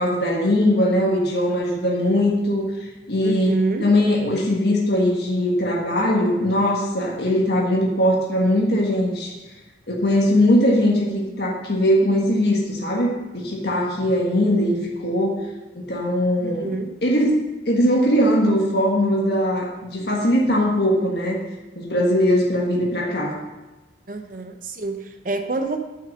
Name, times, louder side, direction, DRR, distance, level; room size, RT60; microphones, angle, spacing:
voice 1, 0.0-3.5 3.8-9.3 9.9-14.8 15.0-15.4 15.7-17.4 17.6-21.4 21.7-23.4, left 1 dB, 60° left, -3 dB, 1.6 m, -20 dB
voice 2, 3.2-3.9 16.4-16.9 24.1-25.8, right 3 dB, 45° right, 6 dB, 0.8 m, -27 dB
8.8 x 5.7 x 6.5 m, 1.1 s
head